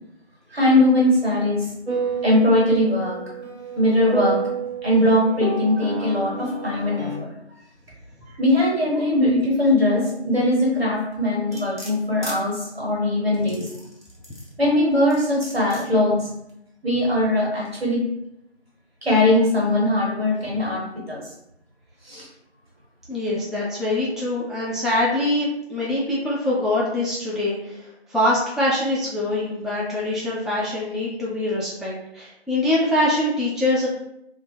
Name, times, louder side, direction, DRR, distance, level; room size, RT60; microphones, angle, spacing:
voice 1, 0.5-1.7 2.2-3.2 3.8-4.4 4.8-7.3 8.2-13.7 14.6-16.3 16.8-18.0 19.0-21.2 22.0-22.3, left 1 dB, 65° right, -4 dB, 1.3 m, -20 dB
sound 1, 1.9-7.2, right 4 dB, 80° right, 0.7 m, -29 dB
sound 2, 11.5-12.4 13.3-14.5 15.1-15.9 16.5-16.6, equal, 45° right, 0.7 m, -38 dB
voice 2, 23.1-33.9, left 1 dB, ahead, -7 dB, 0.4 m, -24 dB
2.2 x 2.0 x 3.2 m, 0.80 s
figure-of-eight pair, 180°, 33 cm